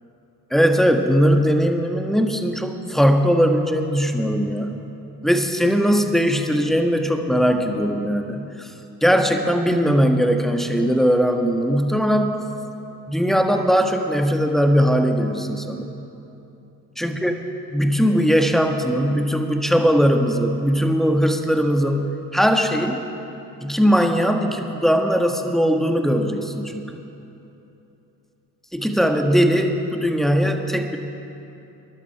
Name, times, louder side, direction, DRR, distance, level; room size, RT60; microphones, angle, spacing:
voice 1, 0.5-4.8 5.2-8.7 9.0-12.3 13.1-16.1 17.0-17.4 17.7-23.0 23.6-26.9 28.7-31.0, equal, ahead, 4 dB, 1.5 m, -20 dB
21.0 x 11.5 x 4.7 m, 2.9 s
hypercardioid pair, 55°, 49 cm